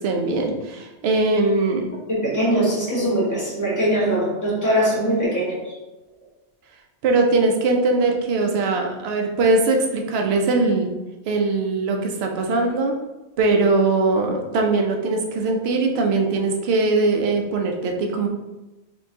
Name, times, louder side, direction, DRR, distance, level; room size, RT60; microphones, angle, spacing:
voice 1, 0.0-1.9 7.0-10.9 11.3-12.9 13.4-18.3, right 3 dB, 70° right, 2 dB, 0.9 m, -21 dB
voice 2, 2.1-5.7, right 1 dB, 15° left, -7 dB, 1.5 m, -21 dB
4.4 x 3.8 x 2.7 m, 1.1 s
omnidirectional pair, 1.1 m